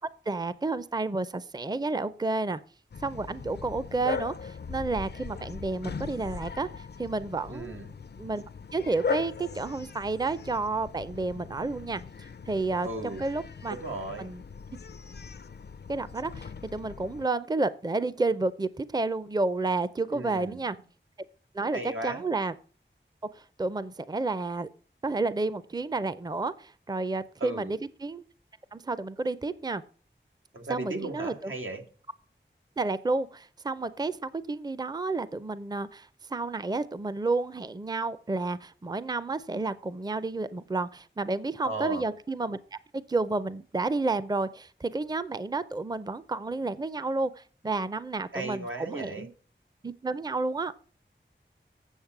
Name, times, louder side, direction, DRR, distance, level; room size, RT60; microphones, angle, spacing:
voice 1, 0.3-2.6 3.0-7.8 8.2-8.4 8.7-13.8 14.2-14.4 15.9-20.8 21.5-22.5 23.3-24.7 25.0-28.2 28.7-29.8 30.7-31.5 32.8-42.6 42.9-49.3 49.8-50.7, right 3 dB, 20° right, 16 dB, 0.5 m, -31 dB
Bark, 2.9-17.3, left 5 dB, 55° left, 0.4 m, -39 dB
voice 2, 7.5-7.9 12.8-13.3 13.7-14.3 20.1-20.6 21.7-22.2 27.4-27.7 30.5-31.8 41.6-42.0 48.3-49.3, right 2 dB, 90° right, 3 dB, 1.6 m, -36 dB
8.2 x 6.9 x 5.9 m, 0.41 s
wide cardioid pair, 55°, 20 cm